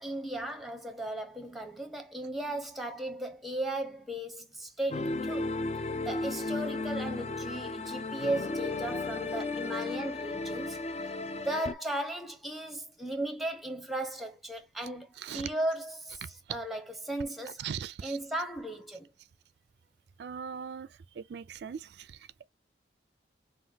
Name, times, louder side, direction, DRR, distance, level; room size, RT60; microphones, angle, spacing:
voice 1, 0.0-5.6 6.0-10.8 11.3-17.6 18.0-19.1, right 1 dB, ahead, 0.8 m, -36 dB
sound 1, 4.9-11.7, left 3 dB, 35° left, 0.4 m, -34 dB
voice 2, 15.2-15.5 16.2-16.3 17.6-18.2 20.2-20.9 21.2-22.4, right 7 dB, 65° right, 0.3 m, -40 dB
5.6 x 2.4 x 2.8 m
head